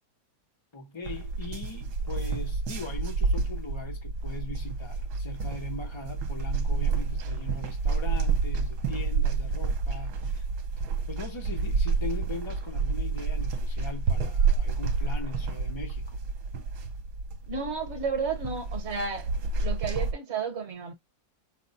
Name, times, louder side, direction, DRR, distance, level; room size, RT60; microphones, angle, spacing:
voice 1, 0.7-10.5 11.1-16.2, left 3 dB, 45° left, 0.3 m, -41 dB
sound 1, 1.1-20.1, right 4 dB, 65° right, 1.2 m, -29 dB
voice 2, 17.5-19.3 19.6-20.9, right 5 dB, 45° right, 1.1 m, -32 dB
5.9 x 2.2 x 3.9 m
omnidirectional pair, 2.0 m